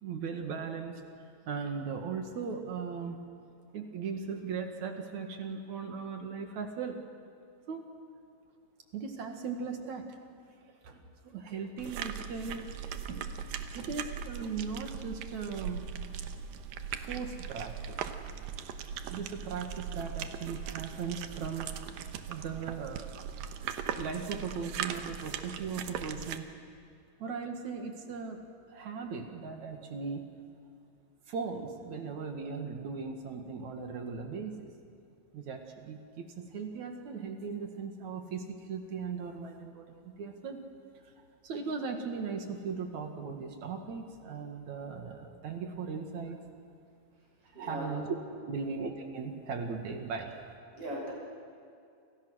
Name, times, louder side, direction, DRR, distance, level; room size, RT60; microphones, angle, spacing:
voice 1, 0.0-1.0 1.5-3.2 3.7-7.0 7.7-7.9 8.9-10.1 10.8-12.6 13.1-13.3 13.7-15.9 16.9-18.0 19.1-21.7 22.3-23.5 24.0-26.5 27.2-28.4 28.7-30.3 31.3-34.7 35.3-40.7 41.0-41.1 41.4-46.4 47.6-48.1 48.5-50.3, right 5 dB, 60° right, 4 dB, 3.1 m, -38 dB
sound 1, 11.8-26.4, right 8 dB, 85° right, 2.9 m, -39 dB
voice 2, 47.5-47.9 50.7-51.1, equal, 40° right, -3 dB, 7.7 m, -38 dB
29.5 x 28.0 x 6.4 m, 2.4 s
omnidirectional pair, 3.9 m